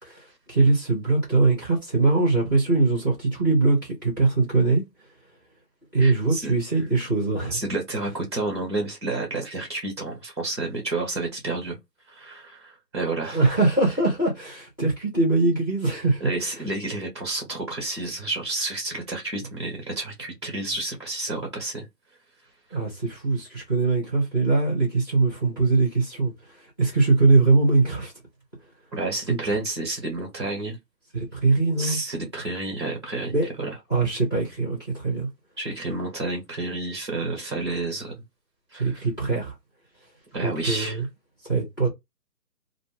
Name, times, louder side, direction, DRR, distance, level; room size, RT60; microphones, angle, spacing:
voice 1, 0.0-4.8 5.9-7.6 13.3-16.6 22.7-28.1 29.3-29.4 31.1-32.0 33.3-33.5 33.9-35.3 38.7-39.5 40.4-41.0 41.4-41.9, right 3 dB, 10° left, 1.0 m, -22 dB
voice 2, 6.0-6.5 7.5-11.8 12.1-13.4 16.2-21.9 28.9-30.8 31.8-33.7 35.6-38.1 38.7-39.0 40.3-41.0, right 2 dB, 15° right, 1.0 m, -30 dB
2.5 x 2.4 x 3.5 m
figure-of-eight pair, 170°, 49 cm